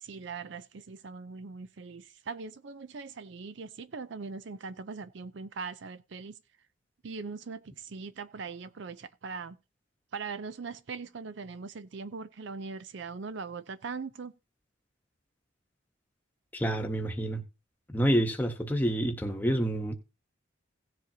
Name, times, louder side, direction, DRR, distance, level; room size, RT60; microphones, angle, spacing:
voice 1, 0.0-6.3 7.0-9.6 10.1-14.3, right 4 dB, 65° right, 0.5 m, -40 dB
voice 2, 16.5-17.4 17.9-19.9, right 1 dB, 10° left, 1.0 m, -28 dB
16.5 x 7.5 x 2.8 m
head